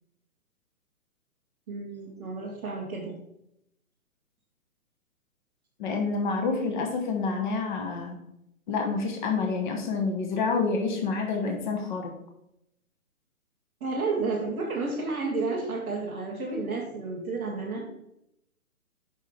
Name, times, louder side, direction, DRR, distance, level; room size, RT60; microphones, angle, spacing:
voice 1, 1.7-3.2 13.8-18.0, right 3 dB, 10° right, -8 dB, 0.5 m, -31 dB
voice 2, 5.8-8.3 8.7-12.1, left 4 dB, 35° left, 3 dB, 1.1 m, -28 dB
8.1 x 5.4 x 3.4 m, 0.80 s
figure-of-eight pair, 130°, 43 cm